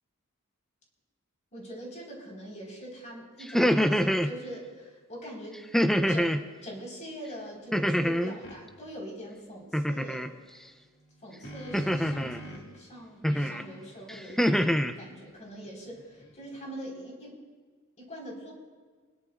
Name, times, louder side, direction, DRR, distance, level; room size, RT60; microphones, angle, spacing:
voice 1, 1.5-5.6 6.1-10.3 11.2-14.7 14.9-17.4 18.0-18.5, equal, 35° left, -2 dB, 4.9 m, -43 dB
sound 1, 3.4-4.3 5.7-6.4 7.7-8.4 9.7-10.3 11.7-12.4 13.2-13.6 14.1-14.9, equal, ahead, 0.5 m, -25 dB
sound 2, 8.4-8.6 11.0-12.8 13.3-16.6, right 1 dB, 55° left, 2.5 m, -47 dB
23.5 x 20.5 x 2.6 m, 1.5 s
head